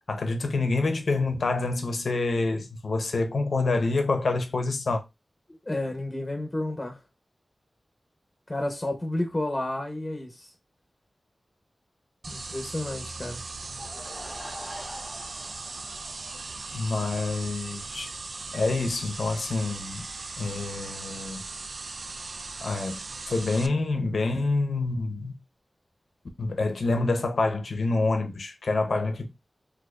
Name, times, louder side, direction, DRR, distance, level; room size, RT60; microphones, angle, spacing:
voice 1, 0.1-5.0 16.7-18.1 18.5-20.1 20.4-21.4 22.6-23.0 23.3-25.4 26.4-29.3, left 3 dB, 80° left, 0.7 m, -27 dB
voice 2, 5.6-7.0 8.5-10.5 12.3-13.5, left 1 dB, 25° left, 0.8 m, -31 dB
sound 1, 12.2-23.7, right 3 dB, 65° right, 0.3 m, -38 dB
Laughter / Crowd, 13.5-17.1, equal, ahead, 1.6 m, -44 dB
4.3 x 2.6 x 2.4 m
wide cardioid pair, 75°, 0 cm